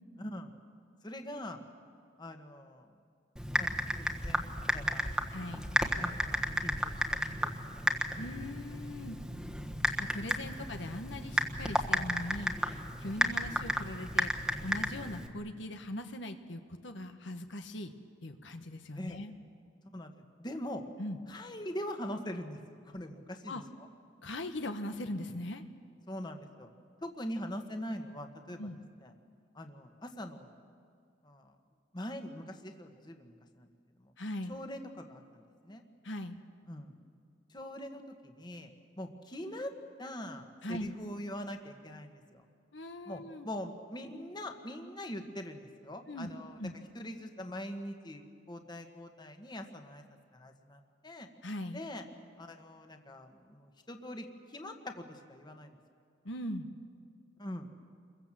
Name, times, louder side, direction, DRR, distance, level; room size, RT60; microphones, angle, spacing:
voice 1, 0.2-0.5 1.0-1.6 2.2-2.9 3.5-3.7 4.1-4.4 4.7-5.1 6.0-7.9 10.0-10.7 13.2-13.6 18.9-19.2 19.9-20.8 21.3-23.6 26.1-26.7 27.0-28.6 29.0-29.1 29.5-30.5 31.2-31.5 31.9-33.7 34.0-34.1 34.5-35.8 36.7-36.9 37.5-38.7 39.0-39.7 40.0-42.4 43.0-46.6 46.9-48.2 48.5-50.0 50.3-51.3 51.7-52.0 52.4-55.7 57.4-57.7, left 1 dB, 25° left, 5 dB, 1.6 m, -43 dB
Typing, 3.4-15.3, equal, 5° right, 1.4 m, -33 dB
voice 2, 5.3-5.6 8.2-9.2 10.0-14.3 14.6-17.9 18.2-19.3 21.0-21.2 23.5-23.6 24.2-25.6 28.6-28.8 34.2-34.6 36.0-36.4 40.6-40.9 42.7-43.5 46.1-46.3 46.6-46.7 51.4-51.8 56.2-56.7, left 1 dB, 75° left, 7 dB, 1.4 m, -40 dB
28.5 x 23.0 x 7.6 m, 2.2 s
head